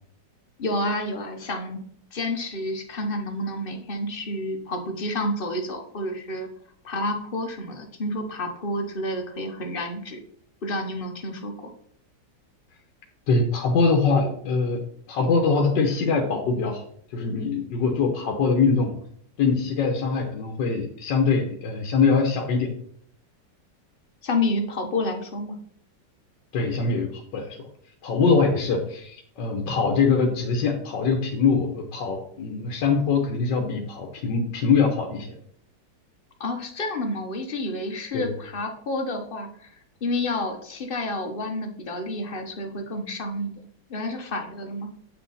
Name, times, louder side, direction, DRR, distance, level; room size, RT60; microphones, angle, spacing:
voice 1, 0.6-1.8 2.1-6.5 6.8-10.2 10.6-11.7 24.2-25.6 36.4-39.7 40.0-43.5 43.9-44.9, left 1 dB, 35° left, 5 dB, 1.1 m, -29 dB
voice 2, 13.3-14.8 15.1-16.8 17.1-18.9 19.4-22.7 26.5-27.6 28.0-35.3 38.1-38.3, left 4 dB, 80° left, 2 dB, 1.6 m, -23 dB
8.6 x 6.3 x 4.1 m, 0.64 s
omnidirectional pair, 1.9 m